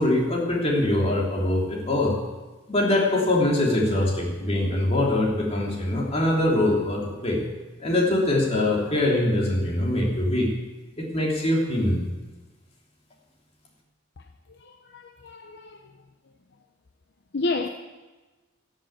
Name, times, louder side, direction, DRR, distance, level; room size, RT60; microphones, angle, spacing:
voice 1, 0.0-2.2 2.7-7.4 7.8-10.5 11.0-12.0, left 1 dB, 30° left, 3.2 m, -23 dB
voice 2, 14.6-15.9 17.3-17.7, left 3 dB, 55° left, 0.7 m, -30 dB
15.0 x 7.4 x 8.7 m
head